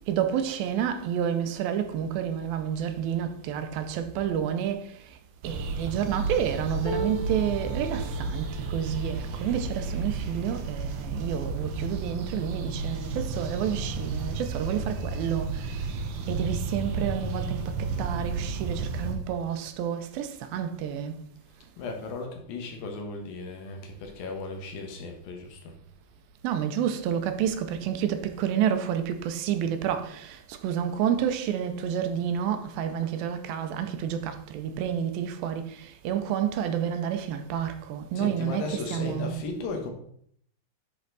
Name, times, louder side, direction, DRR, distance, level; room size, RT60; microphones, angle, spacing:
voice 1, 0.1-4.9 5.4-15.9 16.3-21.2 26.4-39.4, right 9 dB, 90° right, 2.5 m, -29 dB
sound 1, 5.4-19.2, right 4 dB, 75° right, 2.5 m, -32 dB
sound 2, 6.8-13.0 13.6-13.8 14.1-14.8 15.8-15.9, right 2 dB, 40° left, 2.7 m, -41 dB
voice 2, 21.8-25.7 38.1-39.9, left 3 dB, 75° left, 3.0 m, -36 dB
10.5 x 4.4 x 4.0 m
omnidirectional pair, 4.2 m